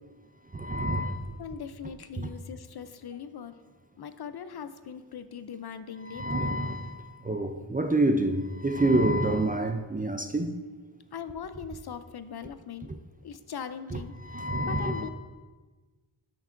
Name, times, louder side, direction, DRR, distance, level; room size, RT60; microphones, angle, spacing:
voice 1, 0.5-1.2 2.2-2.3 6.0-10.6 13.9-15.1, right 1 dB, 20° right, 0.4 m, -28 dB
voice 2, 1.4-3.6 4.0-6.6 11.1-12.9 13.2-15.1, left 7 dB, 55° left, 0.5 m, -41 dB
12.0 x 5.8 x 2.5 m
wide cardioid pair, 65°, 47 cm